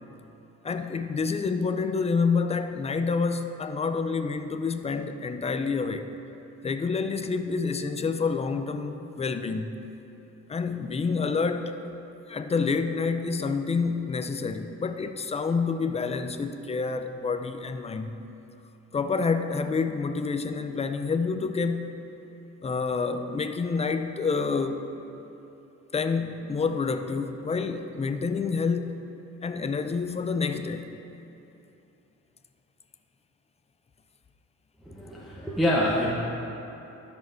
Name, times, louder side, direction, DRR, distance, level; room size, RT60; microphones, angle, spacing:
voice 1, 0.6-6.1 6.6-9.8 10.5-11.8 12.3-18.2 18.9-21.9 22.6-24.9 25.9-29.1 29.4-30.9, left 4 dB, 20° left, 8 dB, 0.4 m, -28 dB
voice 2, 34.9-36.1, left 1 dB, ahead, -6 dB, 0.9 m, -26 dB
12.5 x 6.3 x 2.6 m, 2.9 s
cardioid pair, 90°, 30 cm